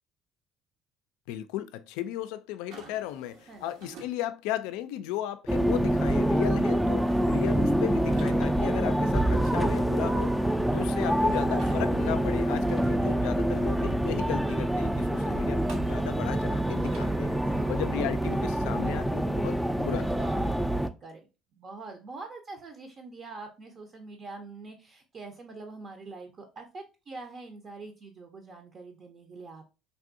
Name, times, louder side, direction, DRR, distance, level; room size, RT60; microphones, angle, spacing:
voice 1, 1.3-10.3 10.7-17.4 17.7-20.1, left 12 dB, 85° left, 0.3 m, -35 dB
sound 1, 2.7-4.1 7.1-8.4 11.5-12.9 15.7-17.2, right 3 dB, 80° right, 1.0 m, -49 dB
sound 2, 5.5-20.9, right 1 dB, 5° right, 0.3 m, -26 dB
voice 2, 10.5-10.8 14.2-14.4 17.5-18.1 20.0-21.2 21.6-29.6, right 3 dB, 45° right, 0.6 m, -44 dB
3.4 x 2.6 x 2.5 m
supercardioid pair, 85°, 0 cm